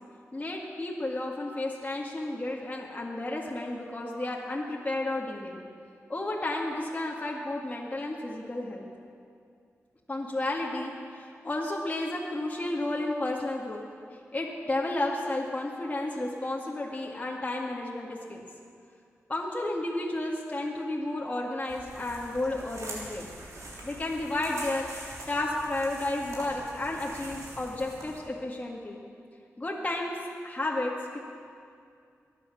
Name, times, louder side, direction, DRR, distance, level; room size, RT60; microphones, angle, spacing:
voice 1, 0.3-5.6 6.1-8.9 10.1-13.8 14.3-18.4 19.3-23.3 23.8-24.9 25.3-29.0 29.6-30.2 30.4-31.2, left 2 dB, 30° left, -3 dB, 1.9 m, -32 dB
sound 1, 21.7-28.2, right 1 dB, 80° right, 3.6 m, -43 dB
22.0 x 9.2 x 6.3 m, 2.3 s
cardioid pair, 65°, 5 cm